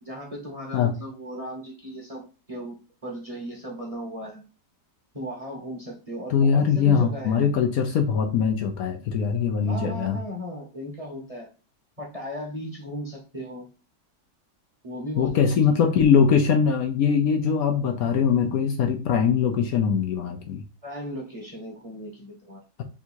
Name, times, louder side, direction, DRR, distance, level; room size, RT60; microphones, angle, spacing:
voice 1, 0.0-4.4 5.1-7.5 9.7-11.5 12.0-13.7 14.8-15.7 20.8-22.6, equal, 25° right, -1 dB, 0.9 m, -36 dB
voice 2, 6.3-10.2 15.2-20.6, left 6 dB, 70° left, 4 dB, 1.0 m, -22 dB
3.6 x 2.6 x 4.4 m, 0.33 s
omnidirectional pair, 1.8 m